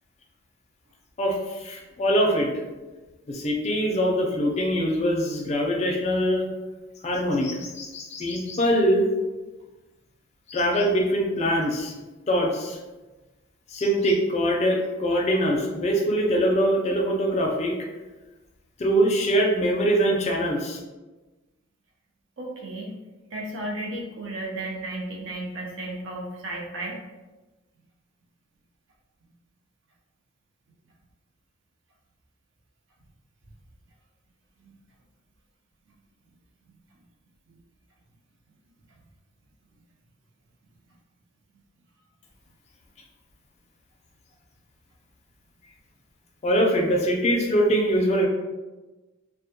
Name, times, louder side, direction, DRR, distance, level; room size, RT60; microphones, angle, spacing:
voice 1, 1.2-2.5 3.3-6.5 7.0-9.1 10.5-11.9 12.3-12.8 13.7-17.7 18.8-20.8 46.4-48.3, equal, 35° left, 0 dB, 0.4 m, -23 dB
voice 2, 22.4-22.9 23.3-27.0, right 1 dB, 70° right, -1 dB, 0.5 m, -33 dB
2.1 x 2.1 x 2.8 m, 1.2 s
head